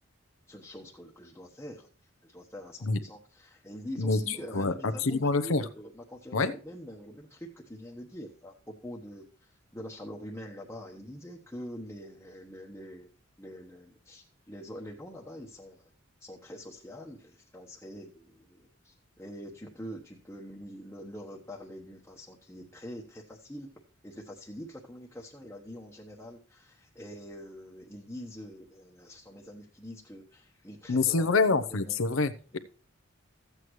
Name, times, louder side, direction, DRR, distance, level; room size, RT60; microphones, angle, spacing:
voice 1, 0.5-1.9 2.2-13.1 13.4-15.9 16.2-23.7 24.0-31.3 31.7-32.1 32.5-32.6, equal, 10° left, -3 dB, 1.1 m, -45 dB
voice 2, 4.0-5.6 6.3-6.5 30.9-32.6, left 3 dB, 90° left, 12 dB, 0.8 m, -26 dB
14.0 x 8.1 x 3.1 m, 0.40 s
head